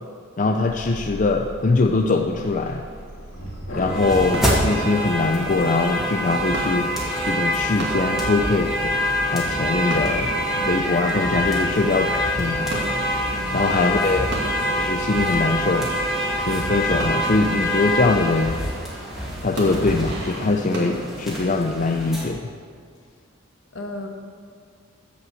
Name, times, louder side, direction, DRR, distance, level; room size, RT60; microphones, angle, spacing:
voice 1, 0.4-2.8 3.7-6.9 7.3-8.9 9.3-10.3 10.6-12.8 13.5-14.3 14.7-15.9 16.5-18.6 19.4-22.4, left 3 dB, 40° left, 3 dB, 0.5 m, -22 dB
sound 1, 0.7-5.9, equal, 90° left, 2.9 m, -35 dB
sound 2, 2.4-18.6 18.9-22.1, right 1 dB, 60° right, 2.6 m, -36 dB
sound 3, 3.9-22.2, equal, ahead, 2.5 m, -25 dB
voice 2, 13.3-13.8 23.7-24.1, left 2 dB, 70° left, 2 dB, 1.5 m, -34 dB
15.5 x 5.3 x 7.1 m, 2.1 s
head